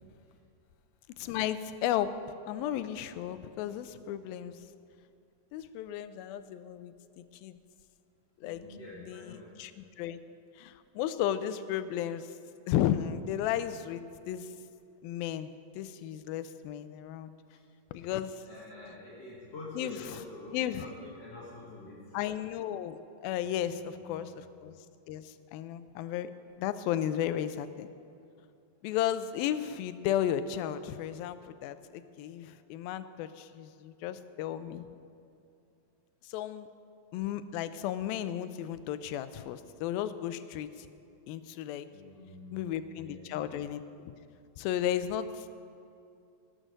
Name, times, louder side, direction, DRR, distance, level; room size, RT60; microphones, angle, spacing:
voice 1, 1.2-2.1 2.5-4.6 5.5-7.6 8.4-8.7 9.0-10.2 10.6-12.4 12.7-14.5 15.0-17.3 17.9-18.4 19.8-20.0 20.5-20.9 22.1-24.8 25.1-26.3 26.6-27.9 28.8-34.9 36.2-36.7 37.1-40.9 41.3-41.9 42.5-44.1 44.6-45.5, left 11 dB, 85° left, 12 dB, 2.4 m, -34 dB
voice 2, 8.4-9.5 17.5-17.6 17.9-18.1 18.5-22.2 23.4-24.4 41.9-43.4, left 2 dB, 45° left, -8 dB, 2.9 m, -47 dB
18.5 x 7.9 x 6.5 m, 2.6 s
omnidirectional pair, 4.2 m